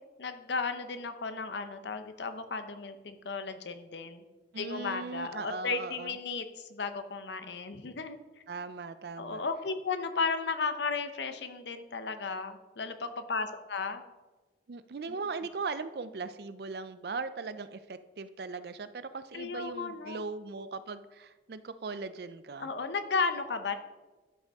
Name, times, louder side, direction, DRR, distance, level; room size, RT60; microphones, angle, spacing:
voice 1, 0.2-4.2 4.6-8.2 9.2-14.0 15.1-15.2 19.3-20.2 22.6-23.7, left 4 dB, 75° left, 9 dB, 0.7 m, -34 dB
voice 2, 4.5-6.2 8.5-9.4 14.7-22.7, right 4 dB, 60° right, 13 dB, 0.4 m, -39 dB
11.5 x 6.6 x 3.5 m, 1.2 s
head